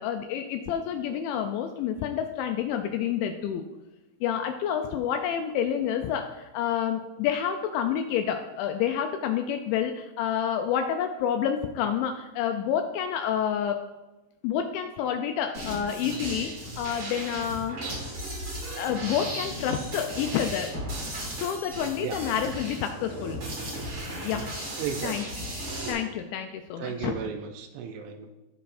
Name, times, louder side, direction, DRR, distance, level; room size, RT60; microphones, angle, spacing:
voice 1, 0.0-3.7 4.2-13.8 14.4-17.8 18.8-20.7 21.4-23.4 24.2-24.6 25.0-25.3 25.9-27.2, left 9 dB, 85° left, 6 dB, 2.7 m, -29 dB
sound 1, 15.5-25.9, right 1 dB, 45° right, 1.6 m, -36 dB
voice 2, 24.8-25.2 25.8-26.0 26.8-28.3, right 7 dB, 80° right, 6 dB, 2.8 m, -34 dB
17.0 x 5.7 x 2.5 m, 1.1 s
omnidirectional pair, 5.6 m